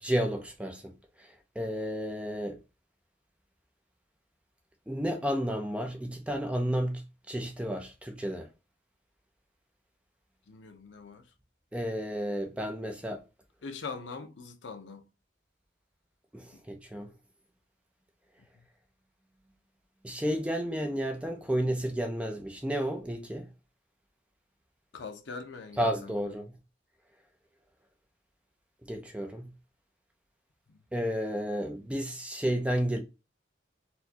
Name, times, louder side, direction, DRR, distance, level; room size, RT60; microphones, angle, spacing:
voice 1, 0.0-2.6 4.9-8.5 11.7-13.2 16.3-17.1 20.0-23.5 25.8-26.6 28.8-29.5 30.9-33.0, equal, 5° right, 0.5 m, -32 dB
voice 2, 10.5-11.2 13.6-15.1 24.9-26.3 30.7-30.8, left 4 dB, 75° left, 0.6 m, -42 dB
4.3 x 2.2 x 2.8 m
head